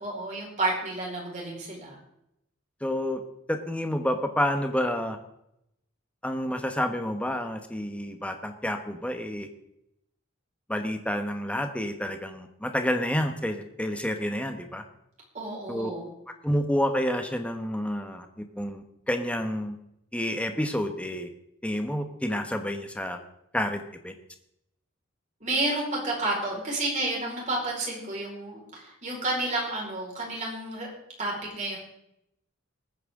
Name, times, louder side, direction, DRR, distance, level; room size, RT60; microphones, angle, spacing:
voice 1, 0.0-2.0 15.3-16.1 25.4-30.9 31.2-31.8, right 2 dB, 35° right, -3 dB, 4.9 m, -30 dB
voice 2, 2.8-3.2 3.5-5.2 6.2-9.5 10.7-14.8 15.7-15.9 16.4-19.8 20.1-21.3 21.6-23.2 23.5-24.1, equal, 5° left, 6 dB, 1.1 m, -29 dB
20.5 x 9.2 x 3.7 m, 0.80 s
head